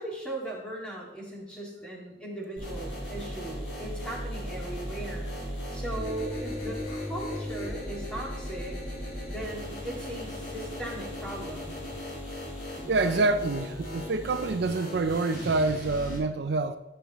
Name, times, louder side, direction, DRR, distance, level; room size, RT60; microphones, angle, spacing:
voice 1, 0.0-5.3 5.7-8.8 9.3-11.7 13.0-13.3, right 1 dB, 5° left, 2.2 m, -38 dB
sound 1, 2.6-16.2, left 1 dB, 80° left, 3.6 m, -37 dB
voice 2, 12.9-16.8, right 3 dB, 65° right, 0.4 m, -27 dB
14.5 x 6.8 x 3.1 m
head